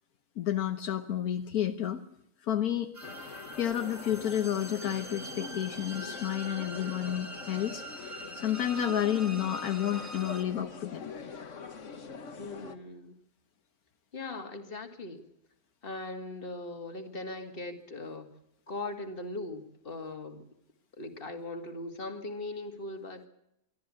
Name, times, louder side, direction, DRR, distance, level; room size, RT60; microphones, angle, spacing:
voice 1, 0.4-2.0 2.5-2.9 3.6-7.8 8.3-11.1, left 10 dB, 75° left, 8 dB, 1.4 m, -30 dB
sound 1, 2.9-10.4, right 1 dB, 10° right, 1.5 m, -44 dB
sound 2, 3.0-12.8, left 5 dB, 55° left, 1.7 m, -44 dB
voice 2, 12.4-13.1 14.1-15.2 15.8-18.3 18.7-20.4 21.0-23.3, left 2 dB, 35° left, 6 dB, 2.3 m, -39 dB
23.0 x 13.5 x 8.4 m, 0.82 s
omnidirectional pair, 1.6 m